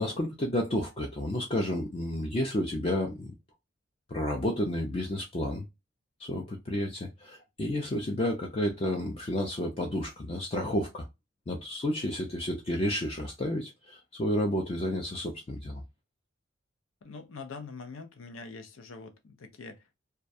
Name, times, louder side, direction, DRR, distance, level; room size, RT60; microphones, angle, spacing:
voice 1, 0.0-3.3 4.1-5.7 6.2-11.1 11.5-15.8, left 1 dB, 30° left, 0.4 m, -31 dB
voice 2, 17.0-20.0, left 4 dB, 85° left, 0.6 m, -44 dB
2.3 x 2.1 x 2.6 m
head